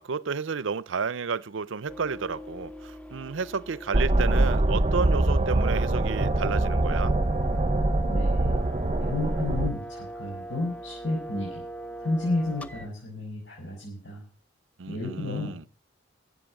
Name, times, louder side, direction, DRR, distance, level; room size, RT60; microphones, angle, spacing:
voice 1, 0.0-7.2 14.8-15.7, right 5 dB, 75° right, 0.6 m, -31 dB
sound 1, 1.9-12.9, right 1 dB, 5° left, 0.7 m, -40 dB
sound 2, 3.9-9.7, right 2 dB, 30° right, 0.8 m, -24 dB
voice 2, 8.1-8.6 9.0-11.6 12.0-14.2 14.9-15.6, left 2 dB, 70° left, 5.8 m, -31 dB
15.0 x 8.3 x 7.4 m
head